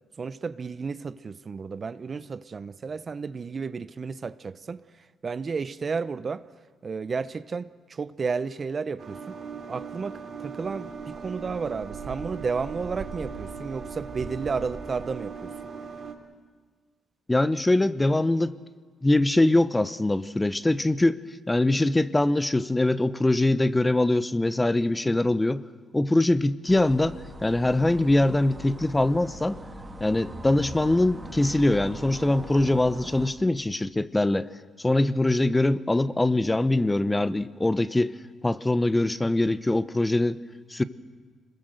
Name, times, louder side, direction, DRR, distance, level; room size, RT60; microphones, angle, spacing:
voice 1, 0.2-6.4 6.8-9.3 9.7-15.5, right 5 dB, 40° right, 0.7 m, -32 dB
sound 1, 9.0-16.1, right 5 dB, 55° right, 3.6 m, -38 dB
voice 2, 17.3-18.5 19.0-21.2 21.5-25.6 25.9-29.6 30.0-34.5 34.8-38.1 38.4-40.4 40.7-40.8, left 2 dB, 15° left, 0.9 m, -23 dB
sound 2, 26.7-33.3, right 1 dB, 20° right, 2.6 m, -41 dB
25.5 x 21.0 x 7.9 m
cardioid pair, 90°, 0 cm